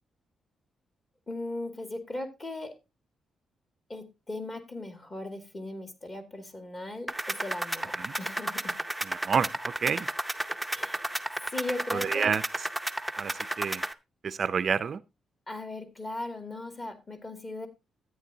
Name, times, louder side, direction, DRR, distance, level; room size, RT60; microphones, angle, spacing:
voice 1, 1.3-2.7 3.9-8.8 10.7-11.2 11.5-12.3 15.5-17.7, left 2 dB, 25° left, 2.4 m, -38 dB
sound 1, 7.1-13.9, right 1 dB, 5° right, 0.6 m, -33 dB
voice 2, 9.0-10.1 11.9-12.7 13.2-13.8 14.2-15.0, right 6 dB, 45° right, 0.4 m, -29 dB
13.5 x 9.3 x 2.7 m
cardioid pair, 125°, 0 cm